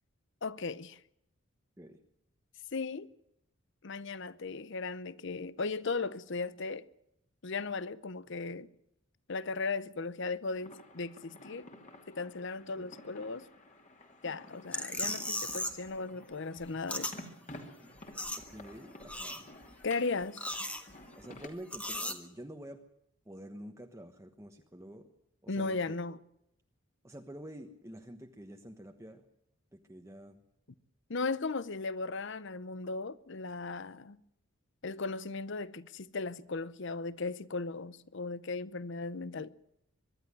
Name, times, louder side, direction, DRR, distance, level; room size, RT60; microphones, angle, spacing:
voice 1, 0.4-1.0 2.7-3.1 3.8-6.8 7.4-8.7 9.3-11.7 12.1-13.5 14.2-17.1 19.8-20.5 25.5-26.2 31.1-34.2 34.8-39.5, left 3 dB, 60° left, 0.8 m, -37 dB
sound 1, 10.6-21.5, left 1 dB, 35° left, 2.8 m, -52 dB
sound 2, 14.7-15.9 16.1-17.2 17.5-17.6 17.8-18.7 19.0-19.7 20.2-21.2 21.7-22.1, left 1 dB, 5° left, 1.4 m, -37 dB
voice 2, 18.5-19.4 21.2-22.8 23.3-25.1 25.4-25.9 27.0-29.2 29.7-30.4, equal, 15° right, 1.2 m, -48 dB
24.0 x 12.0 x 10.0 m
head